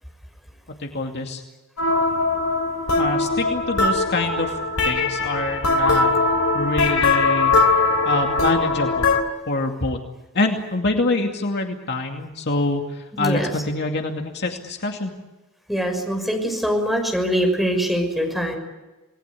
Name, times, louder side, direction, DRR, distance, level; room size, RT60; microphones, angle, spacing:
voice 1, 0.8-1.4 3.0-4.5 4.8-6.1 6.5-7.5 8.0-9.1 9.5-10.0 10.3-15.1, left 2 dB, 50° left, 3 dB, 2.5 m, -25 dB
sound 1, 1.8-9.2, left 3 dB, 70° left, 3.4 m, -20 dB
voice 2, 13.1-13.5 15.7-18.5, equal, ahead, 2 dB, 6.2 m, -23 dB
28.0 x 20.0 x 8.5 m, 1.1 s
head